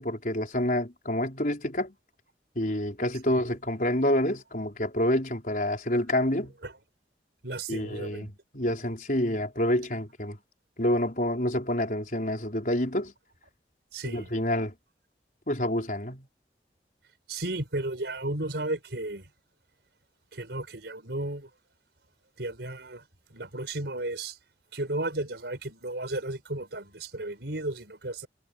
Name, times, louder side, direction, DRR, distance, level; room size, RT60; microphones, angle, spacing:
voice 1, 0.0-1.9 2.5-6.5 7.7-10.4 10.8-13.1 14.0-14.7 15.5-16.3, left 1 dB, 50° left, 4.7 m, -28 dB
voice 2, 7.4-8.3 13.9-14.3 17.3-19.2 20.3-21.5 22.4-23.0 23.3-24.4 24.7-28.3, right 2 dB, 75° right, 4.4 m, -34 dB
head